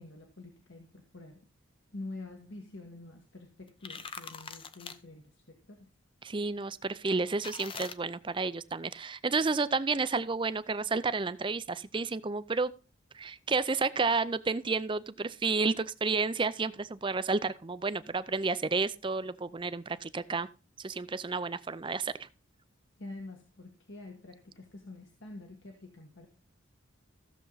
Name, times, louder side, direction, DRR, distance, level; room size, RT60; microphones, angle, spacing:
voice 1, 0.0-1.5 1.9-5.9 23.0-26.3, left 2 dB, 65° left, 1.6 m, -47 dB
sound 1, 3.7-5.0 7.4-8.0, left 5 dB, 25° left, 0.6 m, -42 dB
voice 2, 6.2-12.7 13.1-20.5 20.8-22.3, right 4 dB, 25° right, 0.5 m, -31 dB
15.0 x 7.1 x 4.0 m
head